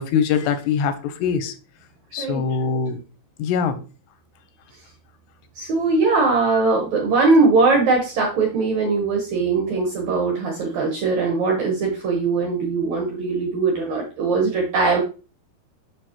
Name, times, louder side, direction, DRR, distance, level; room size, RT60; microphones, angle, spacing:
voice 1, 0.0-1.5 2.1-3.0 3.4-3.8, left 6 dB, 90° left, 10 dB, 2.9 m, -23 dB
voice 2, 5.6-15.0, right 3 dB, 70° right, 1 dB, 1.8 m, -20 dB
6.8 x 6.1 x 2.9 m, 0.35 s
omnidirectional pair, 4.7 m